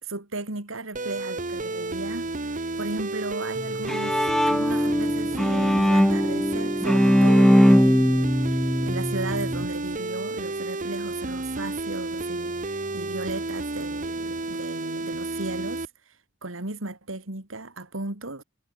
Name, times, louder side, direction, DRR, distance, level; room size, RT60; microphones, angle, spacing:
voice 1, 0.0-15.9 16.4-18.4, right 2 dB, 85° right, 2.9 m, -36 dB
Electro Synth Lead, 0.9-15.9, right 2 dB, 40° right, 1.5 m, -31 dB
Bowed string instrument, 3.6-9.6, equal, ahead, 0.5 m, -20 dB
head